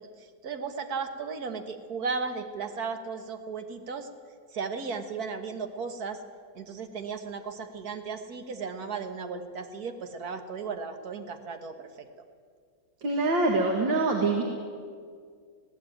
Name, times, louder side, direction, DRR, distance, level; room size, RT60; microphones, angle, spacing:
voice 1, 0.0-4.1 4.5-6.2 6.6-12.1, right 5 dB, 55° right, 7 dB, 1.8 m, -35 dB
voice 2, 13.0-14.4, right 2 dB, 90° right, 2 dB, 2.5 m, -24 dB
20.0 x 16.5 x 9.1 m, 2.1 s
omnidirectional pair, 2.0 m